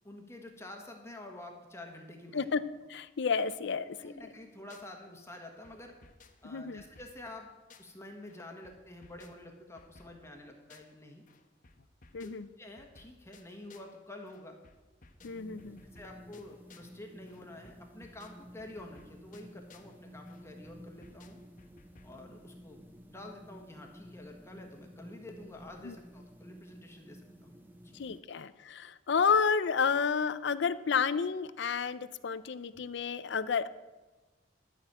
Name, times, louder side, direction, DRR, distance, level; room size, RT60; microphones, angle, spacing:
voice 1, 0.0-2.5 4.0-6.0 6.4-7.5 7.8-11.2 12.2-12.3 12.6-14.6 15.4-15.6 15.9-21.4 22.0-27.9, left 1 dB, 15° left, 2 dB, 1.4 m, -49 dB
voice 2, 2.9-4.1 6.4-6.8 12.1-12.5 15.2-15.8 25.8-25.9 27.9-33.7, left 6 dB, 65° left, 14 dB, 0.5 m, -31 dB
sound 1, 4.2-5.0 5.3-8.0 8.3-11.0 11.3-14.0 14.3-17.0 17.3-20.0 20.3-22.2, left 3 dB, 45° left, 1.1 m, -60 dB
sound 2, 15.2-28.2, equal, 10° right, 0.6 m, -53 dB
12.0 x 6.1 x 8.7 m, 1.2 s
head